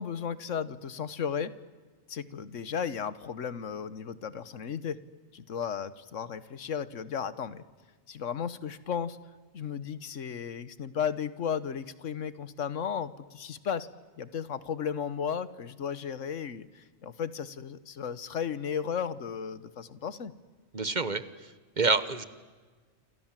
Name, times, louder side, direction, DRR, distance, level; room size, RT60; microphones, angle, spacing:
voice 1, 0.0-1.5 2.1-5.0 5.3-7.6 8.1-9.2 9.5-13.9 14.2-20.3, left 7 dB, 85° left, 15 dB, 1.5 m, -34 dB
voice 2, 20.7-21.2 21.8-22.2, right 3 dB, 40° right, 14 dB, 1.2 m, -26 dB
28.0 x 27.0 x 7.5 m, 1.4 s
omnidirectional pair, 1.3 m